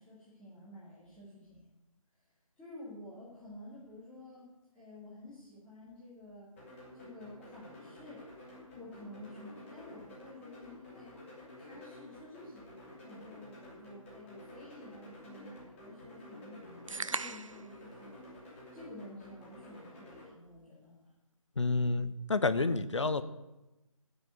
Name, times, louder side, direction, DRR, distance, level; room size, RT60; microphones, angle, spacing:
voice 1, 0.0-1.7 2.6-6.5 6.9-8.2 8.7-11.1 11.6-18.4 18.7-21.1, left 1 dB, 5° left, -12 dB, 2.2 m, -51 dB
sound 1, 6.6-20.3, left 1 dB, 20° left, 2.9 m, -52 dB
sound 2, 16.9-17.7, right 4 dB, 65° right, 0.6 m, -37 dB
voice 2, 21.6-23.2, left 3 dB, 55° left, 12 dB, 0.9 m, -29 dB
12.0 x 7.0 x 8.3 m, 0.99 s
figure-of-eight pair, 150°, 18 cm